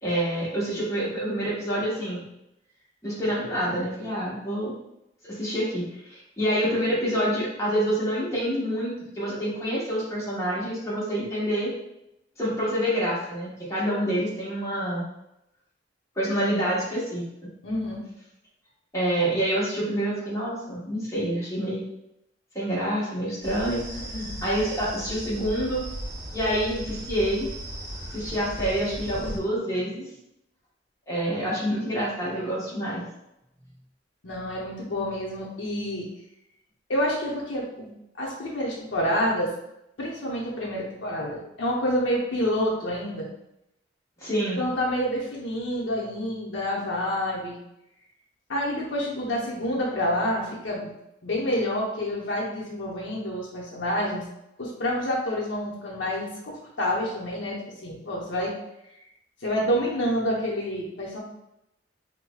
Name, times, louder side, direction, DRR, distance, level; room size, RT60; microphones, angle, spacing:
voice 1, 0.0-2.2 3.0-4.7 5.3-11.7 12.4-15.1 16.2-17.5 18.9-21.8 22.5-25.9 26.3-27.5 28.1-30.0 31.1-33.1 44.2-44.6, equal, 15° left, -7 dB, 1.0 m, -27 dB
voice 2, 17.6-18.0 24.0-24.4 34.2-36.1 36.9-37.9 38.2-39.5 40.0-43.3 44.6-47.6 48.5-50.9 51.2-54.2 54.6-58.5 59.4-61.2, equal, 90° left, -3 dB, 0.8 m, -28 dB
sound 1, 23.4-29.4, right 1 dB, 20° right, 0.8 m, -36 dB
4.7 x 2.2 x 2.2 m, 0.85 s
head